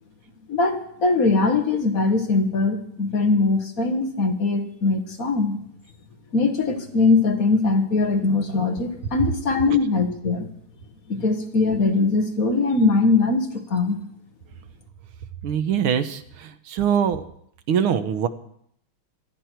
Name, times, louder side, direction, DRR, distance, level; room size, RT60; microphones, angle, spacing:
voice 1, 0.5-5.6 6.3-10.5 11.1-14.0, left 3 dB, 45° left, 4 dB, 1.7 m, -21 dB
voice 2, 15.4-17.2 17.7-18.3, right 8 dB, 80° right, 10 dB, 1.8 m, -23 dB
25.5 x 9.8 x 4.6 m, 0.69 s
omnidirectional pair, 2.4 m